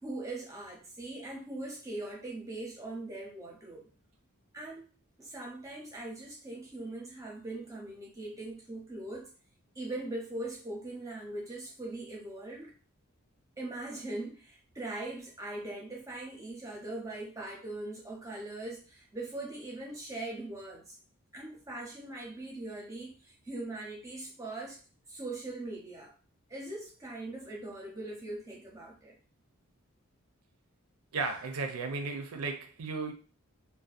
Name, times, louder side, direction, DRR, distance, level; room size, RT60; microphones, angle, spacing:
voice 1, 0.0-3.9 4.5-4.9 5.2-9.3 9.8-12.7 13.6-21.0 21.3-24.8 25.1-26.1 26.5-29.1, right 2 dB, 15° right, 0.6 m, -41 dB
voice 2, 31.1-33.1, right 4 dB, 85° right, 0.5 m, -34 dB
2.6 x 2.2 x 2.4 m
head